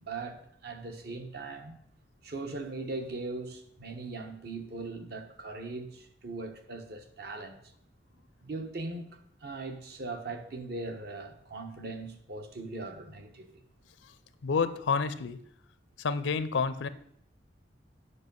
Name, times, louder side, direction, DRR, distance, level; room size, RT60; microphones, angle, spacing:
voice 1, 0.0-1.8 2.2-7.6 8.4-13.5, right 3 dB, 60° right, 1.0 m, -40 dB
voice 2, 14.4-15.4 16.0-16.9, left 5 dB, 80° left, 0.5 m, -29 dB
8.1 x 5.4 x 5.4 m
head